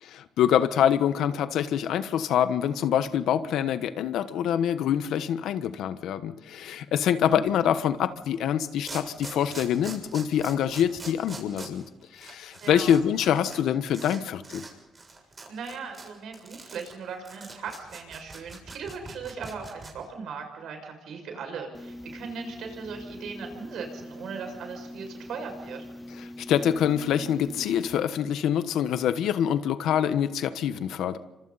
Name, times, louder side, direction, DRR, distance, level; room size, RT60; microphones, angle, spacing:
voice 1, 0.0-11.9 12.1-14.6 26.2-31.2, left 9 dB, 80° left, 12 dB, 1.2 m, -25 dB
voice 2, 7.0-7.4 12.6-12.9 15.5-25.8, right 5 dB, 75° right, 4 dB, 6.4 m, -38 dB
sound 1, 8.3-8.4 8.9-13.6 13.9-14.2 14.4-14.7 15.0-19.9, right 3 dB, 30° right, 7.0 m, -42 dB
sound 2, 21.7-28.0, left 1 dB, 15° left, 1.0 m, -43 dB
29.0 x 25.5 x 4.2 m, 1.1 s
cardioid pair, 90°, 0 cm